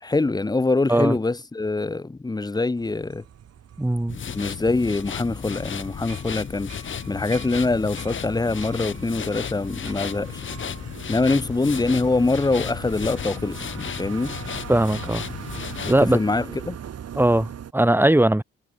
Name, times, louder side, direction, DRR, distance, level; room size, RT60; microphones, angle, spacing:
voice 1, 0.0-3.2 4.3-10.4 11.1-14.3 15.8-16.8, left 3 dB, 15° left, 1.0 m, -24 dB
sound 1, 2.8-17.7, right 9 dB, 55° right, 2.2 m, -41 dB
voice 2, 3.8-4.2 14.7-15.2 15.9-16.2 17.2-18.4, right 1 dB, 5° right, 1.3 m, -19 dB
sound 2, 4.1-16.2, left 7 dB, 40° left, 1.2 m, -34 dB
sound 3, 8.8-14.4, right 5 dB, 35° right, 5.8 m, -53 dB
cardioid pair, 90°, 30 cm